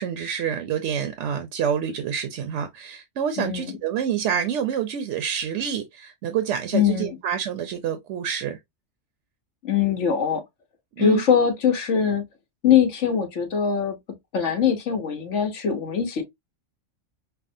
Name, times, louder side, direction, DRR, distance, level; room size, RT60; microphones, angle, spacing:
voice 1, 0.0-8.6 11.0-11.2, right 8 dB, 70° right, 0.9 m, -27 dB
voice 2, 3.4-3.7 6.7-7.2 9.6-10.4 11.0-12.2 12.6-14.0 14.3-16.2, left 7 dB, 70° left, 1.3 m, -22 dB
5.8 x 2.1 x 2.6 m
omnidirectional pair, 1.3 m